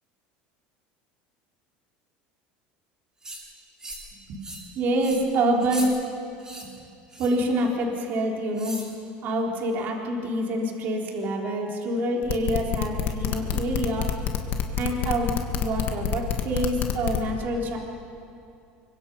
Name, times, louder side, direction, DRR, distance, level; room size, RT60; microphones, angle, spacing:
sound 1, 3.2-3.4 3.8-4.1 4.4-4.7 5.0-5.2 5.6-5.9 6.4-6.7 7.1-7.4 8.6-8.9, right 1 dB, 15° right, 6.7 m, -38 dB
voice 1, 4.8-5.9 6.7-6.8 7.2-8.8 9.2-14.1 14.8-17.8, right 1 dB, 50° right, 0 dB, 3.8 m, -26 dB
sound 2, 12.2-17.2, left 9 dB, 50° left, 2.0 m, -27 dB
25.5 x 23.5 x 5.5 m, 2.5 s
supercardioid pair, 125°, 4 cm